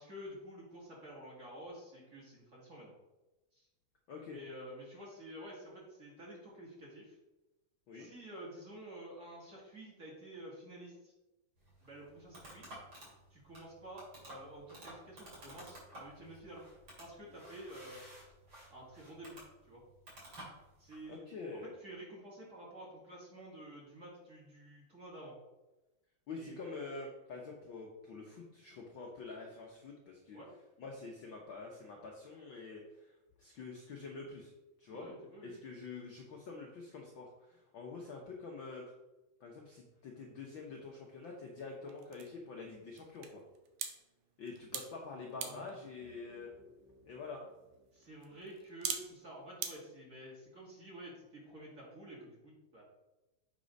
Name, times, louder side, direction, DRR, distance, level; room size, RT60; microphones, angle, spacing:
voice 1, 0.0-2.9 3.5-3.7 4.3-7.2 7.9-11.1 11.8-12.7 13.3-16.6 17.0-18.0 18.7-19.4 19.7-19.8 20.8-21.3 21.5-25.3 26.3-26.5 30.3-30.5 34.9-35.6 45.4-45.7 47.9-52.8, right 1 dB, 30° right, -4 dB, 2.2 m, -50 dB
voice 2, 4.1-4.4 7.9-8.1 21.1-21.7 26.3-30.4 30.8-34.5 34.8-35.1 35.4-38.9 39.4-43.4 44.4-46.5 47.0-47.4, left 4 dB, 75° left, -1 dB, 1.1 m, -46 dB
sound 1, 11.6-21.1, right 1 dB, 45° right, 3.4 m, -53 dB
sound 2, 40.3-49.7, right 8 dB, 90° right, 2.3 m, -47 dB
sound 3, 45.8-50.6, right 1 dB, 65° right, 4.1 m, -66 dB
7.5 x 4.2 x 5.2 m, 1.0 s
omnidirectional pair, 3.4 m